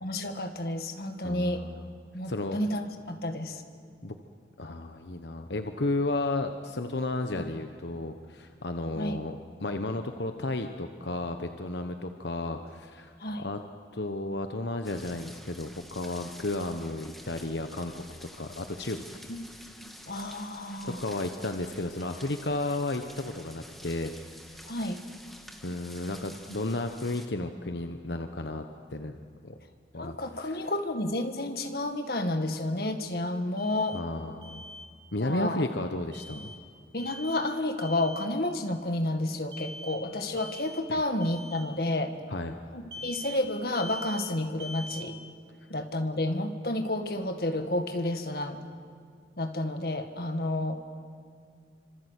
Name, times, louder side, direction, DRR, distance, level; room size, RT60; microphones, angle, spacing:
voice 1, 0.0-1.6 2.1-3.6 7.3-7.4 9.0-9.2 13.2-13.5 19.3-19.4 20.1-21.0 24.7-25.0 30.0-34.0 35.2-35.7 36.9-42.2 42.7-45.2 45.7-48.6 49.4-50.8, left 1 dB, 55° left, 6 dB, 1.9 m, -31 dB
voice 2, 1.2-1.8 2.2-2.6 4.0-4.2 4.6-13.6 13.9-18.0 18.4-19.0 20.8-24.1 25.6-28.6 28.9-29.1 29.4-29.5 29.9-30.6 33.9-34.6 35.1-36.5 40.9-41.0 42.3-42.5, left 2 dB, 80° left, 6 dB, 1.2 m, -33 dB
sound 1, 14.8-27.3, equal, ahead, 1.6 m, -49 dB
Alarm, 33.6-34.0 34.4-34.9 36.1-36.6 37.0-37.5 37.8-38.3 39.5-40.0 40.4-40.8 41.2-41.6 42.9-43.4 43.8-44.2 44.6-45.1, equal, 75° right, 2.7 m, -43 dB
27.5 x 26.0 x 8.4 m, 2.2 s
head